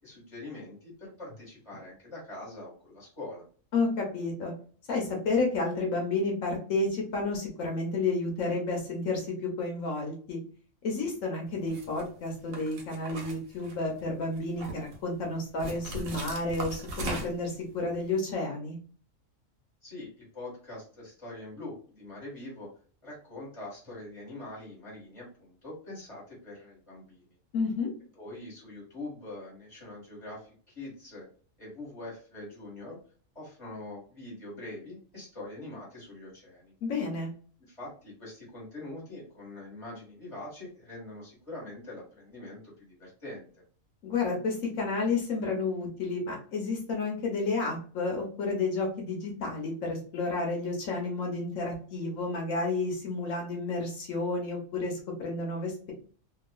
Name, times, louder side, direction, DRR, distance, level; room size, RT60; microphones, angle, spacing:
voice 1, 0.0-3.4 19.8-22.7 23.0-27.2 28.2-31.2 31.6-33.0 33.3-36.7 37.7-43.5, left 2 dB, 25° left, -5 dB, 1.4 m, -43 dB
voice 2, 3.7-4.5 4.9-10.4 10.8-18.8 27.5-27.9 36.8-37.3 44.0-55.9, left 3 dB, 80° left, 0 dB, 1.2 m, -31 dB
sound 1, 11.7-12.0 12.5-14.0 14.4-15.0 15.6-17.5, right 2 dB, 90° right, 1.2 m, -38 dB
2.9 x 2.4 x 2.2 m, 0.42 s
omnidirectional pair, 1.4 m